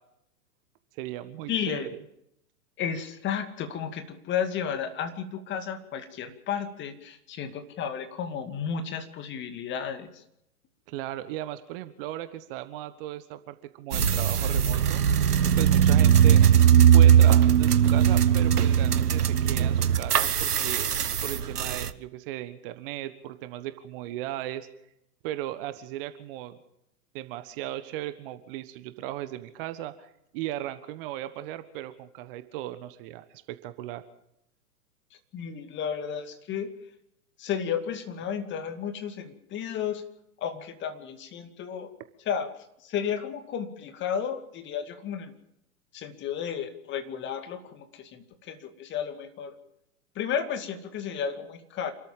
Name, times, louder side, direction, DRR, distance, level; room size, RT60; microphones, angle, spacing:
voice 1, 0.9-2.0 10.9-15.0 15.6-16.4 16.9-20.9 21.2-24.7 25.2-26.6 27.1-34.0, right 14 dB, 35° right, 11 dB, 1.4 m, -37 dB
voice 2, 1.5-1.9 2.8-10.2 35.3-36.7 37.4-40.0 40.4-41.9 42.3-42.5 42.8-45.3 45.9-49.5 50.2-51.9, left 8 dB, 25° left, 8 dB, 2.5 m, -33 dB
sound 1, 13.9-21.9, right 9 dB, 75° right, 1.2 m, -20 dB
28.0 x 13.5 x 7.3 m, 0.78 s
figure-of-eight pair, 115°, 46 cm